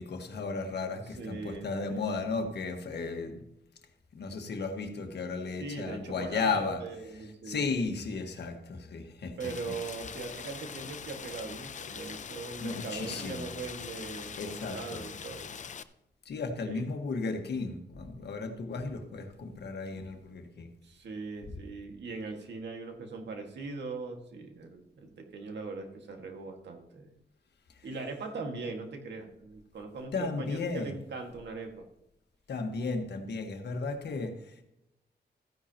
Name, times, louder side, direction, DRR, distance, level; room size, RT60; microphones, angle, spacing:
voice 1, 0.0-3.4 4.1-6.8 7.4-9.7 12.6-13.5 14.4-15.1 16.2-20.8 21.4-21.5 27.7-27.9 30.1-30.9 32.5-34.6, left 4 dB, 75° left, 1.5 m, -34 dB
voice 2, 1.2-2.1 5.6-7.7 9.4-15.5 16.7-16.9 20.8-27.1 27.8-31.9, right 4 dB, 85° right, 1.8 m, -40 dB
Rain, 9.4-15.8, left 7 dB, 45° left, 0.5 m, -42 dB
14.5 x 10.5 x 2.9 m
wide cardioid pair, 130°, 18 cm